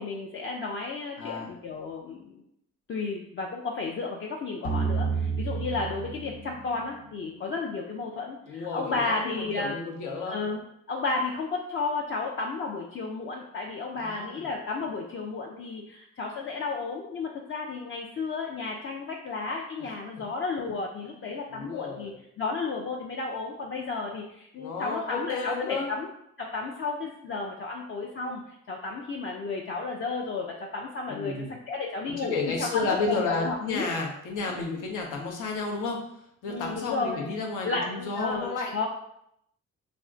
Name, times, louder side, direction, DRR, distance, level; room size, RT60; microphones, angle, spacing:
voice 1, 0.0-2.4 2.9-9.7 10.3-10.6 10.9-26.1 26.4-31.3 31.7-32.3 32.6-33.9 36.5-37.2 37.6-38.9, left 3 dB, 40° left, 0 dB, 0.4 m, -33 dB
voice 2, 1.2-1.5 8.5-10.4 13.9-14.4 19.8-19.9 21.5-22.1 24.6-25.9 31.1-31.5 32.1-36.0 36.4-38.7, left 3 dB, 90° left, 0 dB, 0.7 m, -32 dB
sound 1, 4.6-7.6, right 5 dB, 60° left, 0.8 m, -31 dB
2.4 x 2.1 x 3.7 m, 0.76 s
cardioid pair, 90°, 30 cm